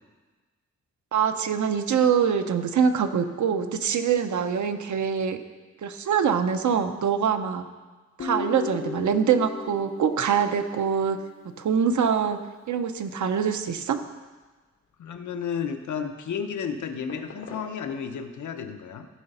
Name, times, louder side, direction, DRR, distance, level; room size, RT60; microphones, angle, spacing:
voice 1, 1.1-5.4 5.8-7.7 8.2-11.2 11.6-12.4 12.7-14.0, right 7 dB, 80° right, 8 dB, 0.7 m, -24 dB
Guitar, 8.2-11.5, left 5 dB, 45° left, 0.8 m, -36 dB
sound 1, 14.3-18.4, left 3 dB, 70° left, 2.6 m, -51 dB
voice 2, 15.0-19.1, left 7 dB, 85° left, 7 dB, 0.8 m, -32 dB
14.5 x 4.8 x 5.5 m, 1.3 s
wide cardioid pair, 170°, 29 cm